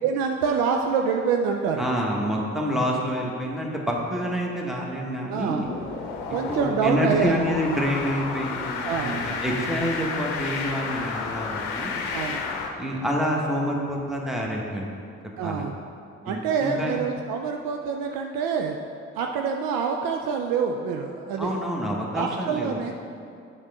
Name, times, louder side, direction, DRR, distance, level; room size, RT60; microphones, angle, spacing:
voice 1, 0.0-1.9 5.3-5.7 6.3-7.3 8.8-9.3 12.1-12.5 15.4-15.8 16.2-18.8 19.2-21.5 22.1-22.9, right 6 dB, 75° right, 3 dB, 0.5 m, -26 dB
voice 2, 1.8-5.7 6.3-11.9 12.8-14.9 15.4-15.7 16.2-17.0 21.4-22.9, equal, ahead, -2 dB, 1.3 m, -28 dB
sound 1, 5.6-12.7, left 5 dB, 80° left, 0.7 m, -31 dB
7.2 x 6.5 x 3.5 m, 2.4 s
hypercardioid pair, 40°, 35 cm